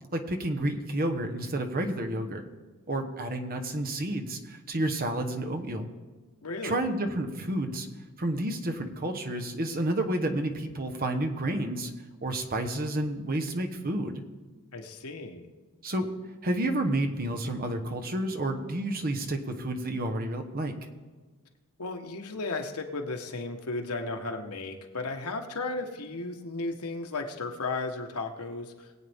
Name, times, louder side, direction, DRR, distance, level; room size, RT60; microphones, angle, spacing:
voice 1, 0.1-2.5 2.9-5.9 6.6-7.9 8.2-11.9 12.2-14.2 15.8-16.1 16.4-20.7, right 1 dB, 40° right, 4 dB, 1.1 m, -30 dB
voice 2, 6.4-6.8 14.7-15.5 21.8-28.9, left 3 dB, 85° left, 4 dB, 1.3 m, -34 dB
21.0 x 8.5 x 3.6 m, 1.3 s
head